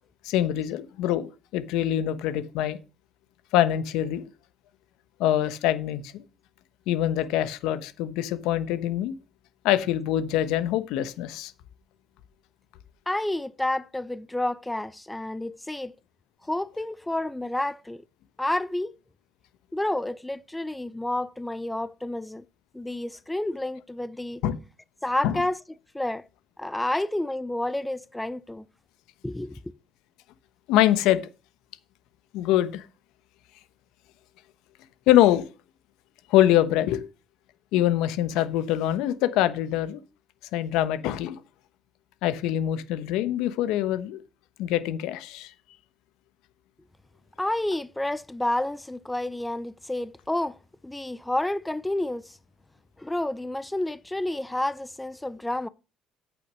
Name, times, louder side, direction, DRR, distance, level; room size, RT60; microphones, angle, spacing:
voice 1, 0.2-2.8 3.5-4.2 5.2-6.2 6.9-9.1 9.6-11.5 24.4-24.6 25.2-25.4 30.7-31.2 32.3-32.9 35.1-35.4 36.3-37.0 37.7-40.0 40.5-41.4 42.2-44.2 44.6-45.5, left 12 dB, 85° left, 1.0 m, -24 dB
voice 2, 13.1-15.9 16.4-18.0 18.4-19.0 19.7-22.4 22.7-24.4 25.0-25.6 25.9-26.3 26.6-28.7 29.2-29.7 47.4-50.6 50.8-52.4 53.0-55.7, left 1 dB, 10° left, 0.5 m, -30 dB
8.5 x 6.5 x 6.3 m
cardioid pair, 110°, 0 cm